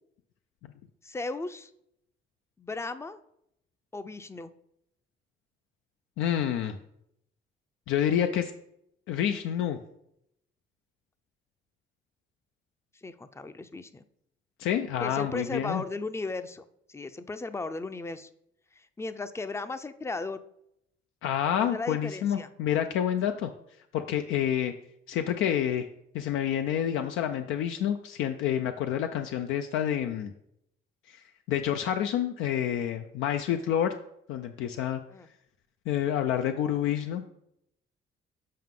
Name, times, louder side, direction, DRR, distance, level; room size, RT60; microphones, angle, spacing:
voice 1, 1.0-1.7 2.6-3.2 3.9-4.5 12.9-14.0 15.0-18.3 18.7-20.4 21.6-22.5 35.1-35.3, left 3 dB, 15° left, 11 dB, 0.4 m, -36 dB
voice 2, 6.2-6.8 7.9-8.5 9.1-9.8 14.6-15.8 21.2-23.5 23.9-24.7 25.1-25.9 26.1-30.3 31.1-33.9 34.3-35.0 35.9-37.2, left 10 dB, 90° left, 7 dB, 0.4 m, -28 dB
7.6 x 4.7 x 3.7 m, 0.77 s
cardioid pair, 90°, 20 cm